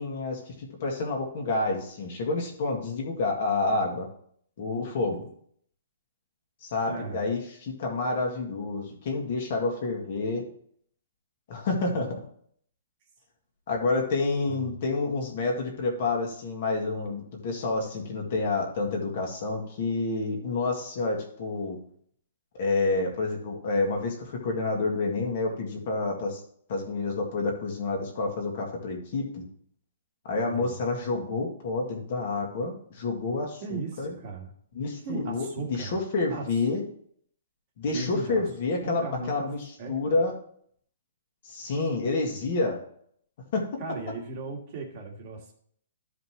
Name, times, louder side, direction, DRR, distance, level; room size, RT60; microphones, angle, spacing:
voice 1, 0.0-4.1 4.6-5.3 6.6-10.5 11.5-12.2 13.7-21.8 22.6-26.4 26.7-29.4 30.3-34.1 34.8-36.8 37.8-40.3 41.4-42.8 43.5-43.8, left 3 dB, 40° left, 1 dB, 1.7 m, -29 dB
voice 2, 6.9-7.2 14.5-14.8 30.4-30.8 33.6-34.5 35.0-35.9 36.3-36.5 37.9-38.5 38.8-39.5 39.8-39.9 43.8-45.5, right 3 dB, 30° right, 1 dB, 1.6 m, -36 dB
13.0 x 5.0 x 3.0 m, 0.62 s
hypercardioid pair, 180°, 0 cm